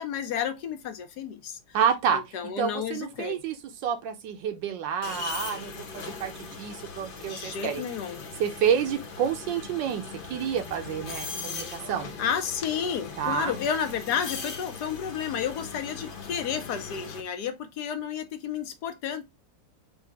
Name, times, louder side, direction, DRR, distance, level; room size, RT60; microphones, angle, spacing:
voice 1, 0.0-1.8 2.1-3.4 7.2-8.2 12.2-19.2, left 8 dB, 65° left, 1.2 m, -31 dB
voice 2, 1.7-2.2 2.6-3.6 3.8-7.8 8.4-10.0 10.3-12.1 13.2-13.5, right 8 dB, 80° right, 1.4 m, -29 dB
sound 1, 5.0-17.2, left 5 dB, 85° left, 0.4 m, -39 dB
4.8 x 2.8 x 3.3 m
omnidirectional pair, 2.0 m